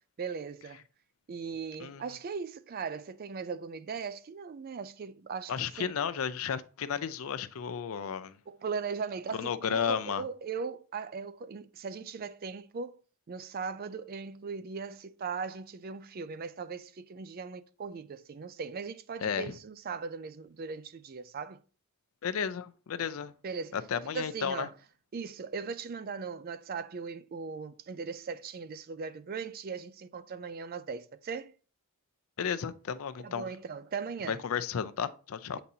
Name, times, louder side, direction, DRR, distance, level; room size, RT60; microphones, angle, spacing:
voice 1, 0.2-0.8 1.3-5.9 8.5-13.0 13.3-21.6 23.4-23.8 24.1-24.7 25.1-31.5 33.2-34.4 35.5-35.6, right 5 dB, 40° right, 0.4 m, -39 dB
voice 2, 5.5-8.4 9.4-10.2 19.2-19.5 22.2-23.3 23.7-24.7 32.4-33.5 34.3-35.6, left 7 dB, 70° left, 0.4 m, -33 dB
8.5 x 4.0 x 2.7 m
head